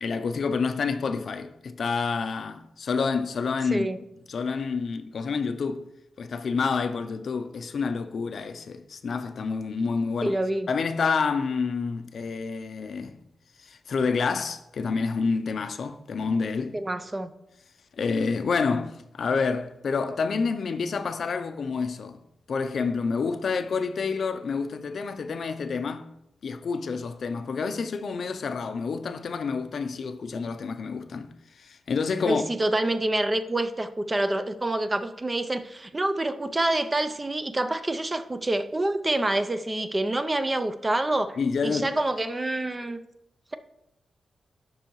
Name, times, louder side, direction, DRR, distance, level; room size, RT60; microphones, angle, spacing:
voice 1, 0.0-3.9 4.3-5.8 6.2-10.4 10.7-13.2 13.6-16.8 18.0-22.2 22.5-26.1 26.4-31.3 31.6-32.4 41.4-41.9, left 5 dB, 65° left, 0.5 m, -28 dB
voice 2, 10.2-10.7 16.7-17.3 32.3-41.4 41.6-43.0, right 1 dB, 20° right, 0.5 m, -27 dB
11.5 x 4.6 x 3.0 m
wide cardioid pair, 100°, 0 cm